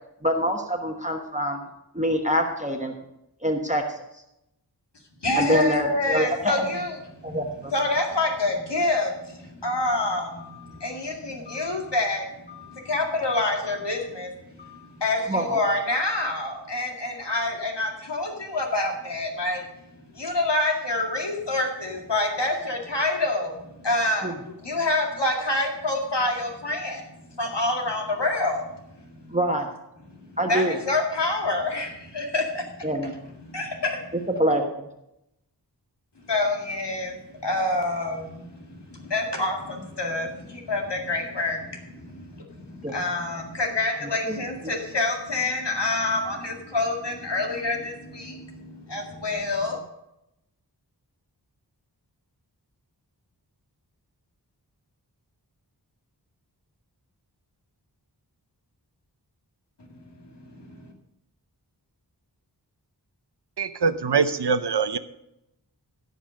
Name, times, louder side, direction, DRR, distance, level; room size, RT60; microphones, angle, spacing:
voice 1, 0.2-1.6 1.9-2.9 3.4-4.0 5.3-6.7 7.2-7.7 15.3-15.6 24.2-24.3 29.3-29.7 30.4-30.8 32.8-33.1 34.3-34.9 42.8-42.9 44.3-44.4, equal, 15° right, 2 dB, 1.2 m, -25 dB
voice 2, 5.2-7.0 7.3-7.4 7.7-14.3 14.6-19.6 20.1-27.0 27.3-28.8 30.5-32.9 33.4-34.1 36.3-49.8 60.2-60.9, left 2 dB, 80° left, 1 dB, 2.2 m, -27 dB
voice 3, 63.6-65.0, right 5 dB, 70° right, 12 dB, 0.8 m, -23 dB
16.0 x 5.5 x 6.4 m, 0.84 s
wide cardioid pair, 55°, 41 cm